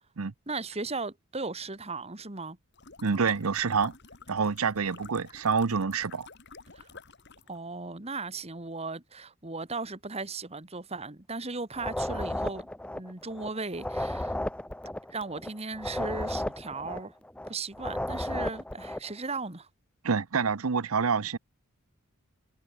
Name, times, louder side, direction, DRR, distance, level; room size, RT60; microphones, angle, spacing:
voice 1, 0.5-2.6 6.7-6.9 7.5-14.4 15.1-17.1 17.5-19.7, right 3 dB, 30° right, 1.8 m, -37 dB
sound 1, 2.7-7.6, left 4 dB, 50° left, 2.6 m, -50 dB
voice 2, 3.0-3.9 4.3-6.3 20.0-21.4, right 5 dB, 80° right, 0.8 m, -27 dB
sound 2, 11.7-13.5 13.7-17.5 17.7-19.1, left 1 dB, 5° left, 0.4 m, -34 dB
head